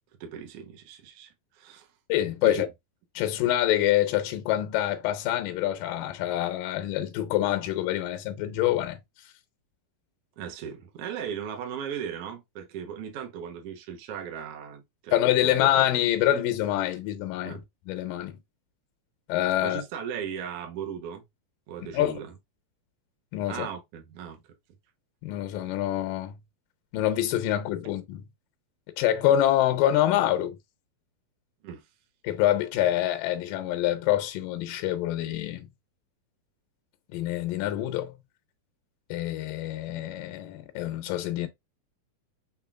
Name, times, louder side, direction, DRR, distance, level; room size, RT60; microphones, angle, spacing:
voice 1, 0.2-1.9 2.4-2.6 10.4-15.1 15.4-15.6 17.4-17.6 19.6-21.2 21.7-22.3 23.5-24.4 31.6-31.8, right 8 dB, 85° right, 1.3 m, -37 dB
voice 2, 2.1-2.7 3.2-9.0 15.1-18.4 19.3-19.8 21.8-22.2 23.3-23.7 25.2-26.3 26.9-28.3 29.0-30.6 32.2-35.7 37.1-38.2 39.1-41.5, left 13 dB, 80° left, 2.3 m, -26 dB
5.6 x 3.8 x 2.4 m
omnidirectional pair, 4.2 m